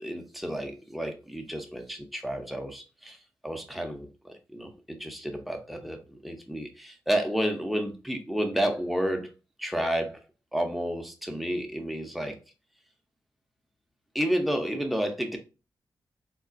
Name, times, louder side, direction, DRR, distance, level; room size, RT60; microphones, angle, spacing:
voice 1, 0.0-3.2 3.4-9.3 9.6-10.2 10.5-12.4 14.1-15.4, equal, ahead, 0.6 m, -31 dB
3.6 x 2.3 x 2.5 m
cardioid pair, 85°, 9 cm